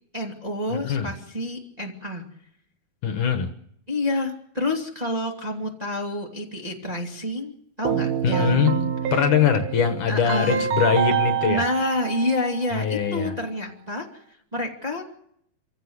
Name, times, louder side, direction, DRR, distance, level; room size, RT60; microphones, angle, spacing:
voice 1, 0.1-2.2 3.9-9.2 10.1-10.7 11.4-14.2 14.5-15.0, left 1 dB, 15° right, 0 dB, 2.0 m, -28 dB
voice 2, 0.7-1.1 3.0-3.5 8.2-8.7 9.1-11.6 12.7-13.4, left 7 dB, 65° left, 7 dB, 2.6 m, -22 dB
Keyboard (musical), 7.9-12.8, right 9 dB, 85° right, 3.1 m, -27 dB
26.5 x 15.5 x 8.1 m, 0.72 s
omnidirectional pair, 4.3 m